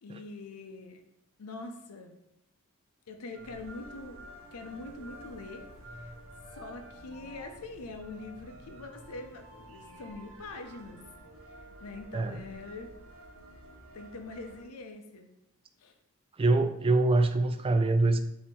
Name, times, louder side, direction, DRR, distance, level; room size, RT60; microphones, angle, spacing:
voice 1, 0.0-1.0 1.4-2.1 3.1-5.7 6.0-6.1 6.5-11.0 11.8-12.9 13.9-15.3 15.8-15.9, left 3 dB, 85° left, 5 dB, 0.6 m, -43 dB
sound 1, 3.3-14.6, right 1 dB, 65° right, 0.8 m, -50 dB
voice 2, 16.4-18.2, right 2 dB, 25° right, 8 dB, 0.3 m, -24 dB
4.4 x 2.8 x 4.1 m, 0.82 s
head